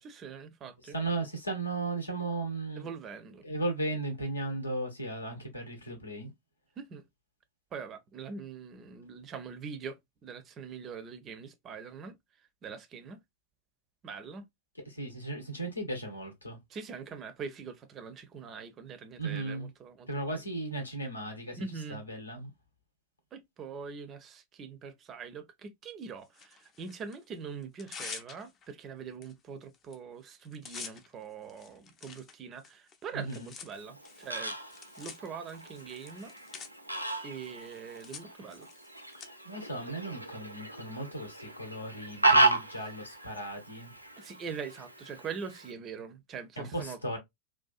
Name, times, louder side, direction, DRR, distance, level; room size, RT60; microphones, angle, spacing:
voice 1, 0.0-1.0 2.8-3.4 6.8-7.0 7.7-13.2 14.0-14.4 16.7-20.1 21.6-22.0 23.3-34.5 35.0-36.3 37.2-38.7 44.2-47.2, right 5 dB, 30° right, 0.4 m, -43 dB
voice 2, 0.9-2.9 3.4-6.3 14.8-16.6 19.2-19.7 20.1-22.5 33.1-33.5 39.1-43.9 46.6-47.2, right 2 dB, 80° left, 0.8 m, -36 dB
Tearing, 26.3-27.2 27.6-28.7 29.2-29.3 29.6-30.0 30.2-39.3, left 6 dB, 30° left, 0.4 m, -48 dB
Fowl, 33.7-45.7, right 2 dB, 90° right, 0.4 m, -33 dB
2.5 x 2.2 x 2.3 m
figure-of-eight pair, 90°, 0 cm